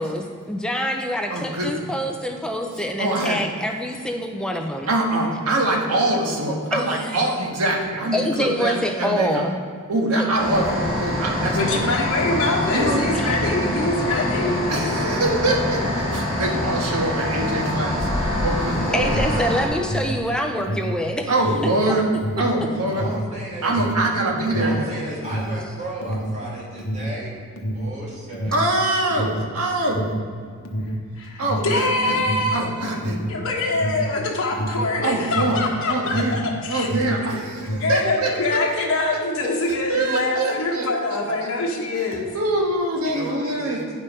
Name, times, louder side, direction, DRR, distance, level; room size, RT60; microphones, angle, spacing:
voice 1, 0.0-4.9 6.7-7.2 8.1-9.5 13.1-13.4 18.9-21.3, equal, 5° left, 3 dB, 0.5 m, -26 dB
voice 2, 1.3-1.8 3.0-3.4 4.9-9.4 9.9-11.8 12.7-13.1 14.7-19.1 21.3-22.1 22.4-23.1 23.6-25.1 28.5-30.0 31.4-32.2 32.5-33.2 35.0-35.6 35.9-36.4 36.7-38.6 39.4-41.5 42.0-42.1 42.3-43.9, right 2 dB, 85° right, 0 dB, 1.5 m, -24 dB
sound 1, 10.4-19.6, left 1 dB, 60° right, 2.6 m, -25 dB
voice 3, 11.5-14.6 31.2-32.7 33.3-36.9 37.8-42.3, left 2 dB, 60° left, -3 dB, 1.3 m, -24 dB
Alarm, 19.1-36.5 36.8-38.1, equal, 75° left, 0.9 m, -29 dB
voice 4, 22.9-23.8 24.5-27.4 27.7-28.6 43.0-43.9, right 1 dB, 30° right, -5 dB, 2.1 m, -34 dB
9.4 x 5.5 x 5.4 m, 2.1 s
head